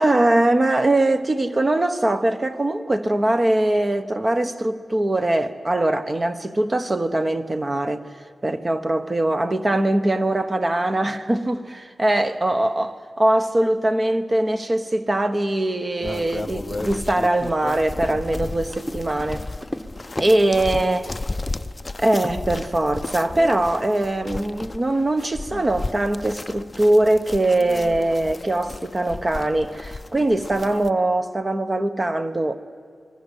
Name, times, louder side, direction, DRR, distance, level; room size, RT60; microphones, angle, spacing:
voice 1, 0.0-8.1 8.4-12.9 13.2-19.5 20.2-21.1 22.0-32.6, right 1 dB, 30° right, 1.2 m, -21 dB
sound 1, 16.0-30.9, left 2 dB, 30° left, 0.5 m, -34 dB
Run, 17.8-20.4 20.7-21.0 21.5-21.7 22.2-22.4, equal, 5° right, 1.5 m, -34 dB
27.0 x 21.0 x 8.3 m
wide cardioid pair, 105°, 0 cm